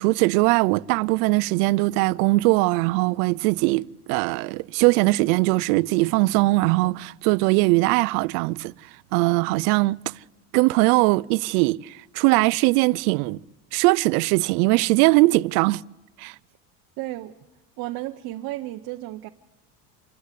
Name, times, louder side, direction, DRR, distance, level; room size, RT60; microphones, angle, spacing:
voice 1, 0.0-8.7 9.1-10.1 10.5-13.4 13.7-15.8 16.2-16.3, right 23 dB, 75° right, 0.6 m, -20 dB
voice 2, 17.0-17.3 17.8-19.3, right 16 dB, 50° right, 0.8 m, -33 dB
27.5 x 12.0 x 8.3 m
supercardioid pair, 130°, 46 cm